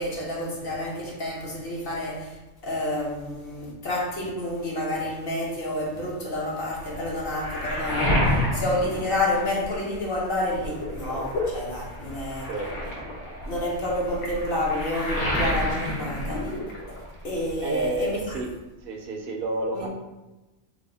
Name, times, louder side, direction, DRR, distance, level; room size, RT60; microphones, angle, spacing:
voice 1, 0.0-2.4 2.6-12.5 13.4-16.5 17.2-18.4 19.7-19.9, left 1 dB, 55° left, -4 dB, 1.0 m, -29 dB
Waves surf, 6.7-9.9 10.3-17.2 17.5-18.4, left 1 dB, 75° left, 1.2 m, -29 dB
voice 2, 17.6-18.5 18.8-19.9, right 2 dB, 60° right, 2 dB, 0.7 m, -30 dB
3.4 x 2.2 x 3.8 m, 1.1 s
omnidirectional pair, 1.2 m